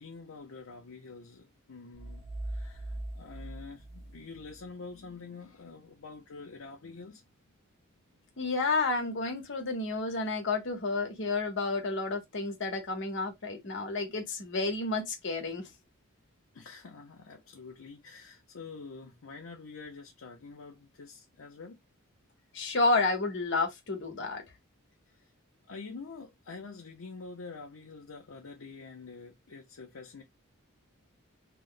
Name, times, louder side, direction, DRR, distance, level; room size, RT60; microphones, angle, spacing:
voice 1, 0.0-7.2 16.5-21.8 25.7-30.2, left 4 dB, 80° left, 0.6 m, -46 dB
sound 1, 1.9-4.6, right 1 dB, 30° right, 0.8 m, -40 dB
voice 2, 8.4-15.6 22.5-24.4, left 3 dB, 60° left, 1.0 m, -30 dB
2.9 x 2.1 x 3.8 m
head